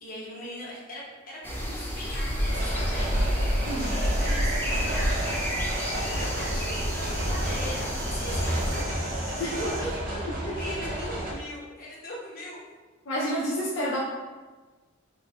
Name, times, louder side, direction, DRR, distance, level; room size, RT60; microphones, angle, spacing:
voice 1, 0.0-3.1 3.8-5.4 6.4-10.0 10.6-12.6 13.3-13.5, left 1 dB, 45° left, -6 dB, 1.1 m, -40 dB
Wild Park Slightly Stormy Afternoon, 1.4-8.8, equal, 10° left, 0.5 m, -29 dB
sound 1, 2.4-11.3, right 1 dB, 45° right, 0.8 m, -32 dB
sound 2, 3.8-9.8, right 2 dB, 80° right, 0.7 m, -42 dB
voice 2, 13.1-14.0, equal, 65° left, -7 dB, 0.6 m, -29 dB
3.1 x 2.4 x 4.0 m, 1.3 s
head